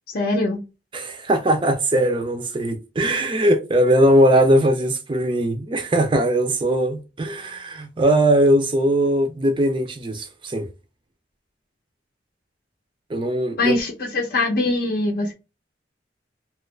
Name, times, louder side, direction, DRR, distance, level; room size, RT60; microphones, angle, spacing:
voice 1, 0.1-0.6 13.6-15.3, left 2 dB, 55° left, 0.6 m, -22 dB
voice 2, 0.9-10.7 13.1-13.7, right 1 dB, 25° right, 0.4 m, -20 dB
2.9 x 2.4 x 3.1 m
head